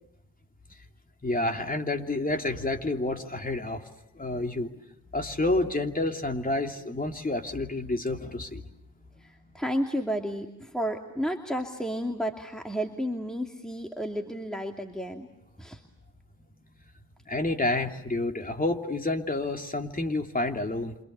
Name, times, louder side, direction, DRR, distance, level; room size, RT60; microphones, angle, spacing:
voice 1, 1.2-3.9 4.1-4.8 5.1-8.6 17.3-21.0, left 2 dB, 25° left, 5 dB, 3.1 m, -29 dB
voice 2, 9.2-15.3 15.6-15.8, equal, ahead, 3 dB, 2.6 m, -32 dB
28.0 x 27.5 x 6.9 m, 0.83 s
supercardioid pair, 50°, 36 cm